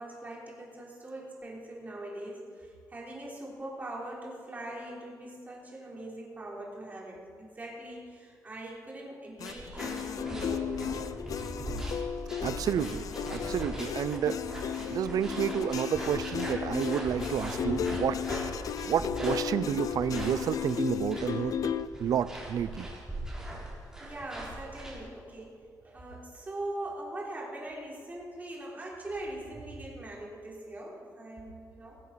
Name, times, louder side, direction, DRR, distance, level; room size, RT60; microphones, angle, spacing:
voice 1, 0.0-11.1 24.0-32.0, right 1 dB, 25° right, -4 dB, 3.5 m, -41 dB
sound 1, 9.4-21.9, left 8 dB, 60° left, 0.5 m, -35 dB
sound 2, 9.4-25.0, right 1 dB, 10° right, 4.0 m, -40 dB
voice 2, 12.4-13.0 13.3-14.5 14.9-18.2 18.9-21.6 22.0-22.9, right 9 dB, 65° right, 15 dB, 0.4 m, -30 dB
19.5 x 7.7 x 5.7 m, 2.2 s
wide cardioid pair, 140°, 7 cm